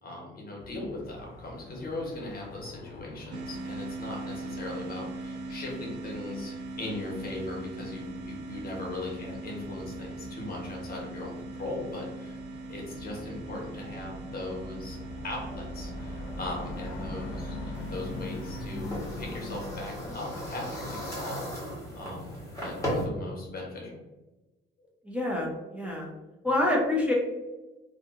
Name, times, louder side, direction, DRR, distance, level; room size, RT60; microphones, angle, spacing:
voice 1, 0.0-12.4 12.7-15.0 15.2-24.0, left 2 dB, 50° left, -2 dB, 1.1 m, -39 dB
sound 1, 0.6-20.2, left 2 dB, 90° left, 0.5 m, -43 dB
sound 2, 3.3-18.8, right 2 dB, 65° right, 0.6 m, -41 dB
sound 3, 17.7-23.0, equal, 15° left, 1.2 m, -37 dB
voice 2, 25.0-26.1 26.4-27.1, left 1 dB, 5° right, -3 dB, 0.5 m, -27 dB
2.6 x 2.5 x 2.5 m, 1.1 s
cardioid pair, 90°, 20 cm